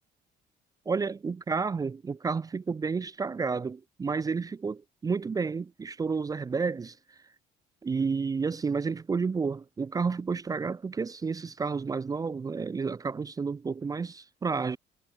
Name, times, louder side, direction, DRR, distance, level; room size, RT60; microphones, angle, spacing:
voice 1, 0.9-7.0 7.8-14.8, right 5 dB, 20° right, 0.5 m, -31 dB
cardioid pair, 110°, 17 cm